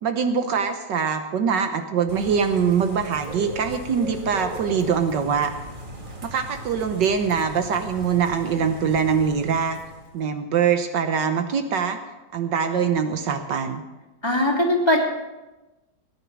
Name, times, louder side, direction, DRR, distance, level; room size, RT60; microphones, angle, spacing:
voice 1, 0.0-5.5 6.2-9.8 10.1-12.0 12.3-13.8, right 6 dB, 70° right, 7 dB, 1.6 m, -23 dB
Bird / Rain, 2.1-10.2, right 1 dB, 25° right, 2.3 m, -39 dB
voice 2, 14.2-15.0, left 1 dB, 15° left, -3 dB, 2.9 m, -20 dB
17.5 x 10.0 x 6.2 m, 1.1 s
omnidirectional pair, 2.0 m